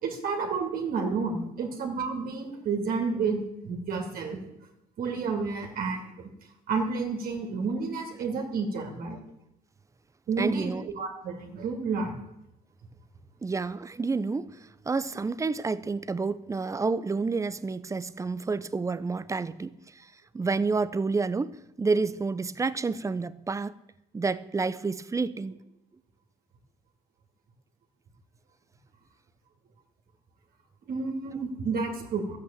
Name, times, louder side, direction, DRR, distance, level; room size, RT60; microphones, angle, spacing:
voice 1, 0.0-4.4 5.0-6.3 6.7-9.2 10.3-12.2 30.9-32.4, right 4 dB, 60° right, 2.5 m, -30 dB
voice 2, 10.4-10.9 13.4-14.6 14.9-19.8 20.3-23.7 24.1-25.6, right 4 dB, 20° right, 0.6 m, -29 dB
12.5 x 8.2 x 8.8 m
cardioid pair, 110°, 17 cm